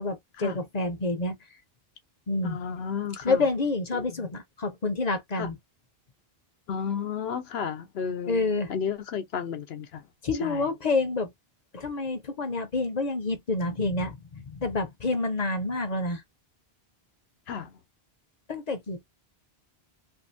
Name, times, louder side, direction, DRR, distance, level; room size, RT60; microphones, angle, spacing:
voice 1, 0.0-1.4 2.3-2.6 3.2-5.6 8.3-8.7 10.2-11.3 11.7-16.2 18.5-19.0, left 3 dB, 45° left, 0.7 m, -28 dB
voice 2, 2.4-3.5 3.9-4.3 5.3-5.5 6.7-10.0 10.4-10.6 17.5-17.8, left 7 dB, 85° left, 0.9 m, -33 dB
2.6 x 2.5 x 2.5 m
omnidirectional pair, 1.0 m